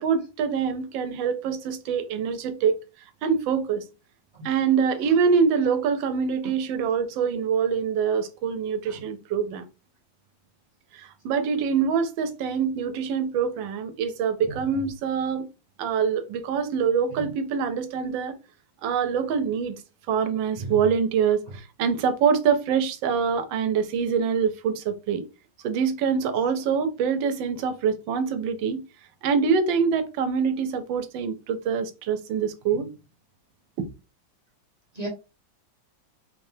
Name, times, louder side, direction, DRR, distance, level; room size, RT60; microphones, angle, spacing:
voice 1, 0.0-2.8 3.2-3.8 4.4-9.7 10.9-15.5 15.8-18.4 18.8-19.8 20.1-25.2 25.6-28.8 29.2-32.9 33.8-33.9, right 6 dB, 75° right, 1.4 m, -25 dB
voice 2, 4.3-4.5 6.4-6.5 8.9-9.0 14.4-14.6 17.2-17.3 20.6-20.8 34.9-35.1, right 2 dB, 30° right, 0.8 m, -35 dB
3.9 x 3.3 x 2.7 m
omnidirectional pair, 2.1 m